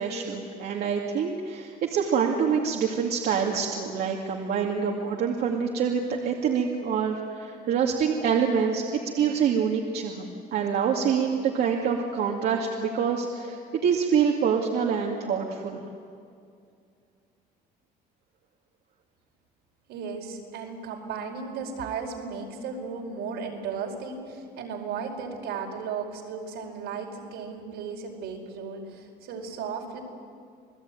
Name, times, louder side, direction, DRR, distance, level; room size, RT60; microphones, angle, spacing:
voice 1, 0.0-10.3 10.5-15.8, right 6 dB, 70° right, -1 dB, 2.4 m, -26 dB
voice 2, 19.9-30.0, right 5 dB, 85° right, 1 dB, 5.0 m, -35 dB
28.5 x 19.0 x 9.3 m, 2.4 s
cardioid pair, 110°, 17 cm